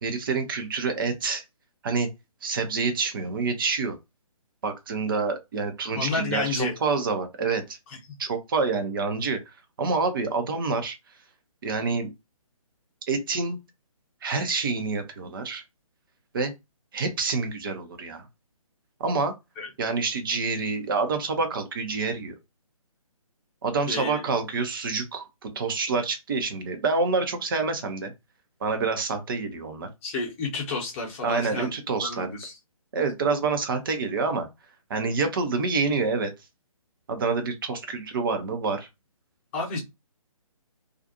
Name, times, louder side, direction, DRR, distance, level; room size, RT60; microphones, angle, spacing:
voice 1, 0.0-1.4 1.8-2.1 2.4-4.0 4.6-7.6 8.2-9.4 9.8-11.0 11.6-12.1 13.1-13.6 14.2-15.6 16.3-16.5 16.9-18.2 19.0-19.3 19.8-22.3 23.6-28.1 28.6-29.9 31.2-32.3 32.9-34.5 34.9-36.3 37.1-38.9, right 4 dB, 35° right, 0.7 m, -27 dB
voice 2, 5.9-6.7 8.1-8.2 19.6-19.7 23.9-24.2 30.0-31.7 32.0-32.6 39.5-39.8, left 3 dB, 20° left, 0.9 m, -30 dB
2.5 x 2.4 x 2.6 m
figure-of-eight pair, 140°, 18 cm